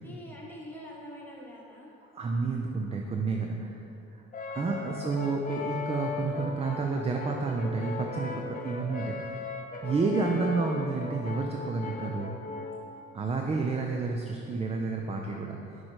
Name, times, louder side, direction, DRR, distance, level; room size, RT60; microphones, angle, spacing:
voice 1, 0.0-1.9 8.6-8.8, left 1 dB, 5° left, -4 dB, 1.3 m, -45 dB
voice 2, 2.1-3.8 4.1-4.2 4.5-9.4 9.8-12.4 13.1-15.8, right 4 dB, 20° right, 2 dB, 0.4 m, -30 dB
Brass instrument, 4.3-12.9, left 4 dB, 25° left, 0.6 m, -37 dB
5.9 x 3.2 x 5.0 m, 2.7 s
hypercardioid pair, 55°, 32 cm